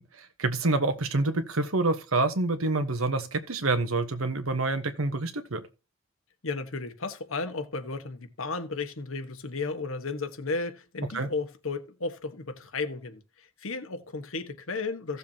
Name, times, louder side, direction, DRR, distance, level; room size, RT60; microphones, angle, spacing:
voice 1, 0.2-5.6 11.1-11.3, right 2 dB, 80° right, 1.2 m, -27 dB
voice 2, 6.4-15.2, left 3 dB, 75° left, 1.4 m, -34 dB
16.0 x 7.0 x 2.9 m
head